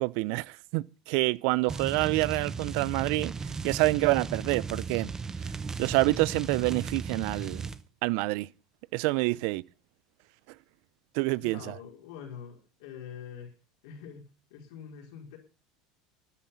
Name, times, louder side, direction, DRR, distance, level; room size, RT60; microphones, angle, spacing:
voice 1, 0.0-5.1 5.8-7.7 8.0-8.5 8.9-9.6 11.1-11.7, right 22 dB, 65° right, 0.5 m, -27 dB
sound 1, 1.7-7.8, right 5 dB, 20° right, 1.0 m, -36 dB
voice 2, 11.3-13.5 13.8-15.4, left 7 dB, 75° left, 4.4 m, -45 dB
14.0 x 9.2 x 5.6 m
hypercardioid pair, 95°, 3 cm